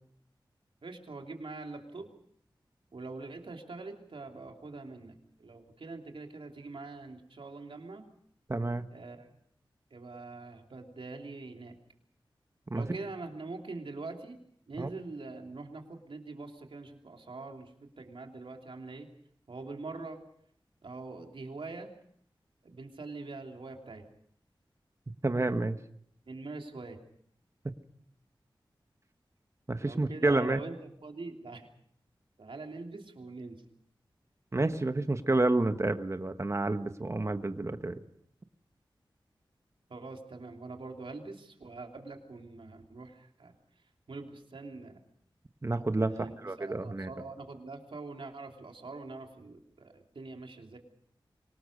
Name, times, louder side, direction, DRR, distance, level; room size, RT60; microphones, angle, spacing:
voice 1, 0.8-2.1 2.9-8.0 8.9-9.3 9.9-11.7 12.7-14.4 14.7-19.1 19.5-20.2 20.8-22.0 22.6-24.0 26.3-27.0 29.8-31.7 32.4-33.6 39.9-43.5 44.1-45.0 46.0-50.8, right 3 dB, 80° right, 3 dB, 3.1 m, -44 dB
voice 2, 8.5-8.9 12.7-12.8 14.8-14.9 25.2-25.8 29.7-30.6 34.5-38.0 45.6-46.1 46.4-47.1, right 2 dB, 35° right, 9 dB, 1.2 m, -29 dB
25.0 x 19.0 x 6.6 m, 0.66 s
wide cardioid pair, 70°, 9 cm